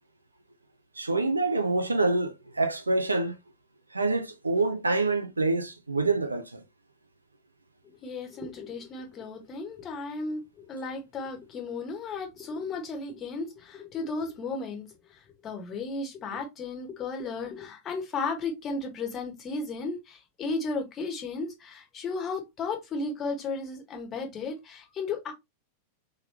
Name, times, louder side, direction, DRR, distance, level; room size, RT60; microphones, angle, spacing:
voice 1, 1.0-3.4 3.9-6.6, right 3 dB, 80° right, 0.5 m, -26 dB
voice 2, 7.8-25.3, left 3 dB, 30° left, 1.4 m, -34 dB
3.8 x 3.2 x 3.1 m
figure-of-eight pair, 90°, 0 cm